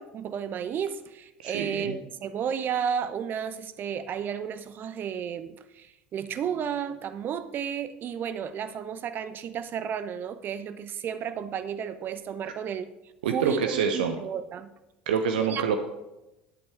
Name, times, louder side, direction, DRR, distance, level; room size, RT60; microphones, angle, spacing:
voice 1, 0.0-12.9 13.2-14.7 15.4-15.7, right 8 dB, 40° right, 12 dB, 0.8 m, -33 dB
voice 2, 1.4-1.9 13.2-14.2 15.1-15.8, right 6 dB, 70° right, 6 dB, 0.8 m, -26 dB
11.0 x 8.4 x 4.7 m, 0.96 s
figure-of-eight pair, 70°, 5 cm